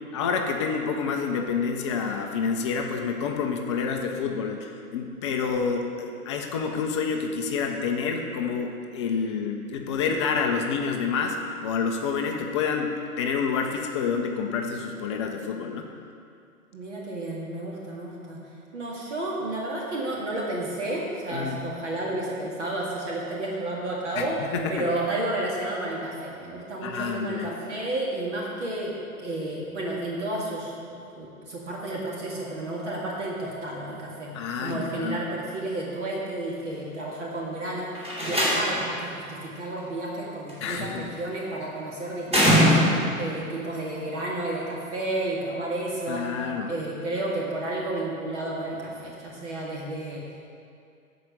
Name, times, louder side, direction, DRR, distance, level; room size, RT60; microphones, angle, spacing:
voice 1, 0.1-11.4 11.6-15.9 21.3-21.6 24.2-24.8 26.8-27.5 34.3-35.2 40.6-41.2 46.1-46.7, left 5 dB, 20° left, 2 dB, 0.5 m, -28 dB
voice 2, 16.7-18.4 18.7-24.4 24.7-34.3 34.6-46.4 46.7-50.2, right 1 dB, 50° right, -3 dB, 2.0 m, -31 dB
Slam, 37.9-39.0 40.5-40.9 42.3-43.2, equal, 15° right, 2.9 m, -21 dB
13.0 x 4.8 x 6.5 m, 2.4 s
figure-of-eight pair, 120°, 44 cm